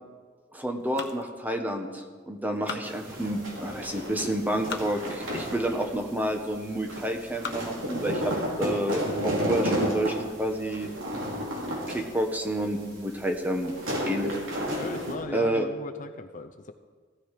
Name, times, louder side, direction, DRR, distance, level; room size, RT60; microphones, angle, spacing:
voice 1, 0.5-8.3 8.6-10.9 11.9-13.7 14.0-14.3 15.3-15.7, right 1 dB, 10° right, 4 dB, 1.3 m, -29 dB
sound 1, 0.8-2.0 2.4-3.5 4.2-4.9 5.6-5.7 6.4-6.8 7.2-7.8 8.4-8.5 8.8-8.9 9.3-9.7, left 5 dB, 60° left, 1.1 m, -41 dB
sound 2, 2.8-15.2, equal, 80° right, 4.3 m, -32 dB
voice 2, 14.8-16.7, left 3 dB, 40° left, 7 dB, 0.6 m, -38 dB
15.5 x 13.0 x 5.0 m, 1.5 s
head